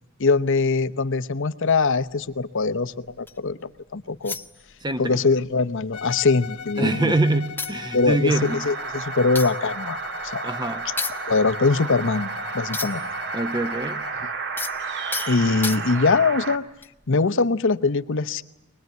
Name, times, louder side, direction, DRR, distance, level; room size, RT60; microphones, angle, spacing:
voice 1, 0.2-4.4 5.0-7.1 7.9-10.0 10.2-10.4 11.3-13.0 15.3-16.6 17.1-18.4, left 4 dB, 60° left, 12 dB, 0.9 m, -22 dB
sound 1, 1.7-3.5 4.2-5.1 5.4-5.6 5.9-6.8 7.2-7.3 7.6-13.2 13.5-16.2 16.8-17.0, left 4 dB, 10° left, 0.8 m, -35 dB
voice 2, 4.8-5.2 6.8-8.6 10.4-10.9 13.3-14.1, right 2 dB, 20° right, 9 dB, 0.9 m, -24 dB
Bowed string instrument, 5.9-14.3, left 7 dB, 90° left, 1.2 m, -39 dB
sound 2, 8.3-16.6, right 4 dB, 55° right, 1.7 m, -32 dB
24.0 x 20.0 x 9.3 m, 0.94 s
head